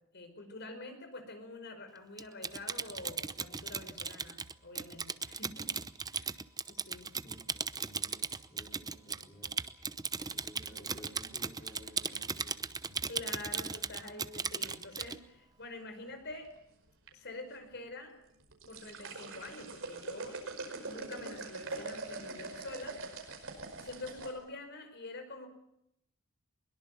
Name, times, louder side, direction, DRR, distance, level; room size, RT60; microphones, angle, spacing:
voice 1, 0.1-5.7 6.1-6.4 6.7-7.1 13.1-16.5 17.1-18.2 18.7-20.4 20.8-23.0 23.8-25.5, left 2 dB, 50° left, 7 dB, 5.2 m, -46 dB
Typing, 2.2-15.2, right 5 dB, 20° right, 0.8 m, -37 dB
voice 2, 7.2-9.6 10.3-13.0, equal, 20° left, -3 dB, 4.7 m, -55 dB
sound 1, 10.2-12.4 13.9-14.2 14.6-15.1 16.0-16.6 16.9-17.1 17.5-17.6 18.3-24.3, right 3 dB, 65° right, 5.1 m, -43 dB
22.5 x 22.0 x 7.1 m, 0.78 s
head